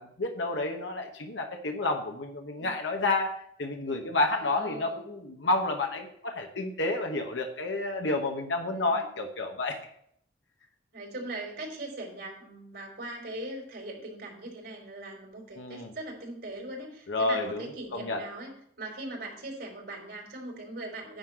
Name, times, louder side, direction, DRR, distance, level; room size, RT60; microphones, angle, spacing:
voice 1, 0.0-9.8 15.6-15.9 17.1-18.2, left 2 dB, 80° left, 3 dB, 1.1 m, -30 dB
voice 2, 4.3-5.1 8.6-9.1 10.9-21.2, right 2 dB, 65° right, -5 dB, 4.1 m, -40 dB
10.5 x 3.9 x 7.4 m, 0.67 s
head